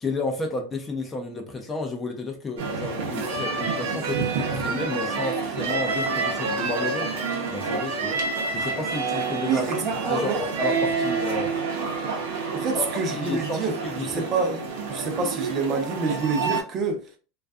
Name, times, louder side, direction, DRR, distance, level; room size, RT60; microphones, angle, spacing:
voice 1, 0.0-7.2 7.5-8.2 8.5-9.7 10.1-11.5 12.7-12.8 13.1-14.3, left 3 dB, 15° left, 0.4 m, -32 dB
sound 1, 2.6-16.6, right 4 dB, 85° right, 0.7 m, -28 dB
voice 2, 9.5-10.5 12.5-14.6 14.9-17.2, right 4 dB, 35° right, 0.5 m, -27 dB
2.4 x 2.3 x 2.2 m
supercardioid pair, 150°, 0 cm